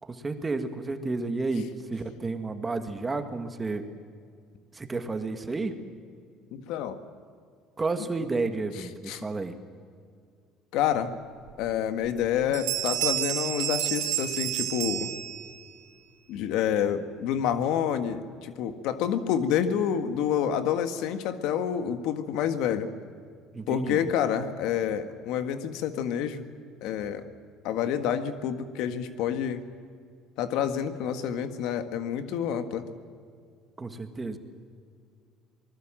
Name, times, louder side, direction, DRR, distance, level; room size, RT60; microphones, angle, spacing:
voice 1, 0.0-3.8 4.7-5.7 7.8-9.6 23.5-24.0 33.8-34.4, right 3 dB, 15° right, 7 dB, 1.7 m, -31 dB
voice 2, 6.5-7.0 9.1-9.2 10.7-11.1 11.6-15.1 16.3-22.9 23.7-26.4 26.8-27.2 27.6-29.6 30.4-32.9, left 9 dB, 70° left, 9 dB, 1.7 m, -28 dB
Bell, 11.5-11.6 12.0-12.3 12.5-15.7, right 14 dB, 75° right, 2.7 m, -30 dB
26.0 x 20.0 x 7.6 m, 2.2 s
cardioid pair, 140°, 0 cm